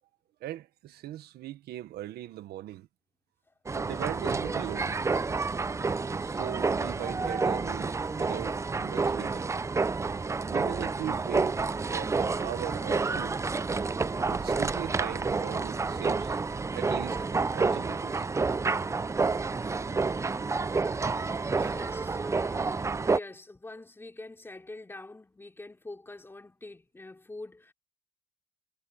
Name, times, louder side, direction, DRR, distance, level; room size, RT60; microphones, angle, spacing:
voice 1, 0.4-2.9 3.7-4.9 6.2-9.5 10.5-11.6 11.9-13.4 14.3-16.4 16.7-18.2 19.9-20.1 20.6-20.7 21.6-21.7, right 13 dB, 70° right, 1.5 m, -39 dB
sound 1, 3.7-23.2, right 4 dB, 15° right, 0.6 m, -29 dB
voice 2, 20.1-20.5 21.6-27.7, left 2 dB, 15° left, 3.3 m, -45 dB
cardioid pair, 110°, 17 cm